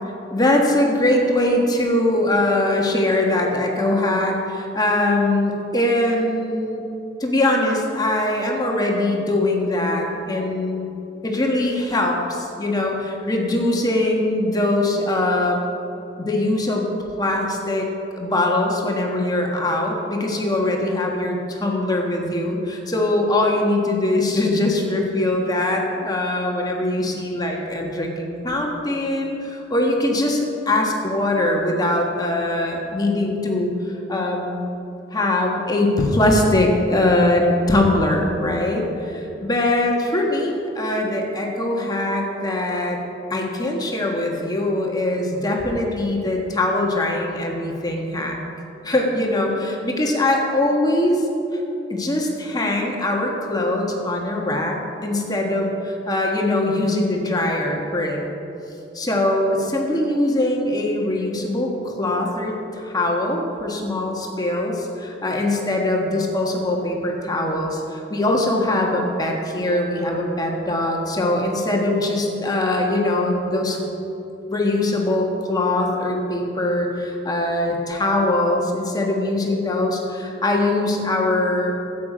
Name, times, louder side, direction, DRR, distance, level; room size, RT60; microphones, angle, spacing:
voice 1, 0.3-6.8 7.2-10.9 11.2-15.6 16.2-16.9 17.2-17.9 18.2-34.6 35.1-43.0 43.3-48.4 48.8-51.2 51.5-51.6 51.9-58.2 58.9-73.8 74.5-81.7, left 1 dB, 20° left, 0 dB, 1.4 m, -22 dB
13.5 x 8.9 x 5.0 m, 2.8 s
head